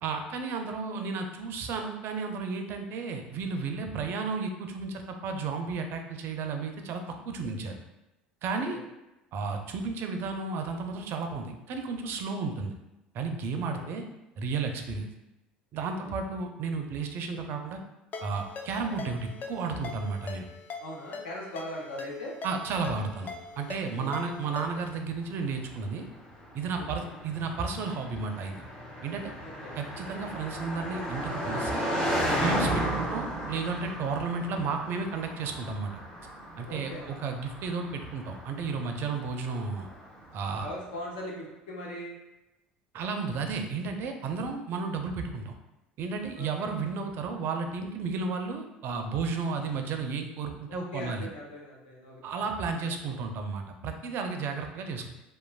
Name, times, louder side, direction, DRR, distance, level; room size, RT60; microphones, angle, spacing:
voice 1, 0.0-7.8 8.4-8.8 9.3-12.7 13.1-14.1 14.4-15.1 15.7-17.8 18.2-20.5 22.4-26.1 26.5-28.6 29.0-29.3 29.8-31.9 32.4-36.0 36.6-39.9 40.3-40.7 42.9-45.5 46.0-51.3 52.2-55.1, right 4 dB, 50° right, 5 dB, 0.4 m, -33 dB
voice 2, 13.5-13.8 16.0-16.1 20.8-22.3 24.0-24.3 26.8-27.2 29.4-29.7 36.7-37.1 40.6-42.1 46.3-46.7 50.7-52.5 52.8-53.1 54.2-54.6, left 1 dB, 75° left, -3 dB, 0.7 m, -41 dB
Ringtone, 18.1-25.0, left 4 dB, 35° left, 0.3 m, -42 dB
Car passing by, 24.0-40.5, equal, 15° left, 1.0 m, -35 dB
3.0 x 2.2 x 2.3 m, 0.98 s
hypercardioid pair, 70°, 5 cm